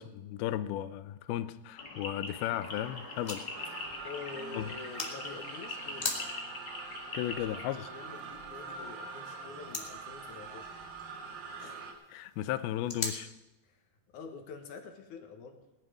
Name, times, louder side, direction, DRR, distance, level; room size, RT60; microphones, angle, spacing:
voice 1, 0.0-3.6 4.5-4.7 7.1-7.9 11.6-13.3, left 13 dB, 85° left, 13 dB, 2.5 m, -35 dB
sound 1, 1.8-7.7, left 3 dB, 45° left, 1.3 m, -43 dB
sound 2, 2.2-13.2, left 2 dB, 20° left, 1.0 m, -44 dB
sound 3, 3.5-11.9, right 4 dB, 70° right, 3.3 m, -44 dB
voice 2, 4.0-6.2 7.3-7.4 7.8-10.7 13.6-13.8 14.1-15.8, left 5 dB, 60° left, 4 dB, 2.5 m, -46 dB
18.5 x 11.0 x 5.0 m, 1.0 s
omnidirectional pair, 4.4 m